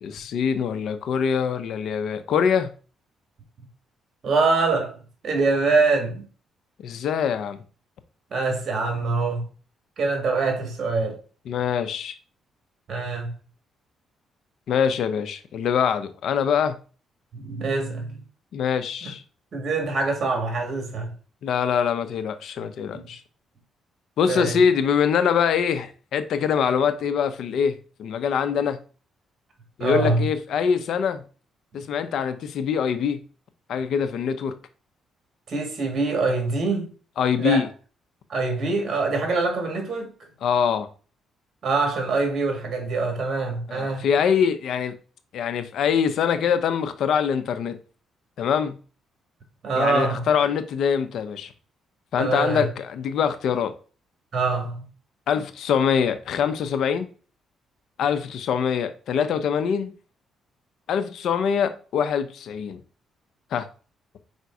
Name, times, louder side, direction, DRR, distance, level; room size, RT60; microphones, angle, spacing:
voice 1, 0.0-2.7 6.8-7.6 11.5-12.1 14.7-16.7 18.5-19.2 21.4-23.2 24.2-28.8 29.8-31.2 31.7-33.2 33.7-34.5 37.2-37.7 40.4-40.9 43.7-45.0 45.3-47.8 48.4-48.8 49.7-51.5 52.1-53.7 55.3-57.1 58.0-59.9 60.9-62.8 63.5-63.7, left 7 dB, 70° left, 0.8 m, -24 dB
voice 2, 4.2-5.0 5.2-6.2 8.3-9.5 10.0-11.2 12.9-13.3 17.3-18.2 19.0-19.1 19.5-21.1 22.9-23.1 24.3-24.6 29.8-30.2 35.5-36.9 37.4-37.6 38.3-40.1 41.6-44.1 49.6-50.3 52.2-52.6 54.3-54.8, right 3 dB, 50° right, 2.4 m, -24 dB
5.1 x 4.1 x 4.7 m
cardioid pair, 90°, 0 cm